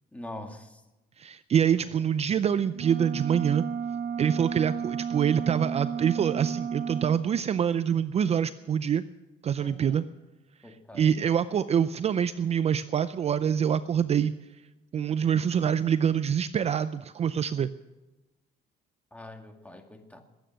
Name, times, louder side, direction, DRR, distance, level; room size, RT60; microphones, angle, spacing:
voice 1, 0.1-0.8 9.6-10.0 10.6-11.2 19.1-20.2, left 1 dB, 10° left, 4 dB, 2.2 m, -44 dB
voice 2, 1.2-3.6 4.2-9.0 9.4-10.0 10.9-14.3 14.9-17.7, right 8 dB, 40° right, 13 dB, 0.5 m, -25 dB
sound 1, 2.7-7.2, right 7 dB, 60° right, 0.9 m, -33 dB
21.5 x 9.1 x 6.3 m, 1.0 s
cardioid pair, 110°, 17 cm